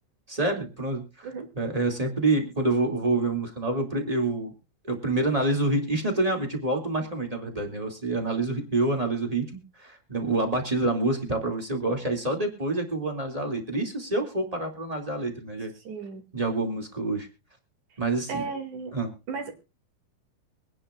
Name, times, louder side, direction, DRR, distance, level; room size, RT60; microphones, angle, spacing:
voice 1, 0.3-1.3 1.5-4.5 4.8-15.7 16.3-17.3 18.0-18.4 18.9-19.1, right 2 dB, 15° right, 3 dB, 1.6 m, -27 dB
voice 2, 15.9-16.2 18.3-18.9 19.3-19.5, right 4 dB, 55° right, 6 dB, 3.5 m, -34 dB
24.0 x 10.0 x 2.4 m, 0.30 s
omnidirectional pair, 4.3 m